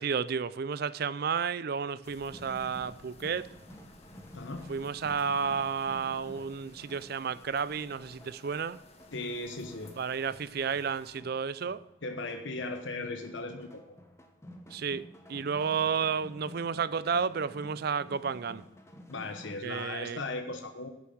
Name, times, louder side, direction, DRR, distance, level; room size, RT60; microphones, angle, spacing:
voice 1, 0.0-3.5 4.7-8.8 10.0-11.8 14.7-18.6 19.6-20.2, right 6 dB, 50° right, 0.4 m, -32 dB
sound 1, 2.0-11.2, left 2 dB, 30° left, 1.2 m, -56 dB
sound 2, 2.3-19.7, equal, 15° left, 1.1 m, -52 dB
voice 2, 4.3-4.7 9.1-10.0 12.0-13.9 19.1-20.9, left 2 dB, 70° left, 1.0 m, -37 dB
9.2 x 7.0 x 7.7 m
head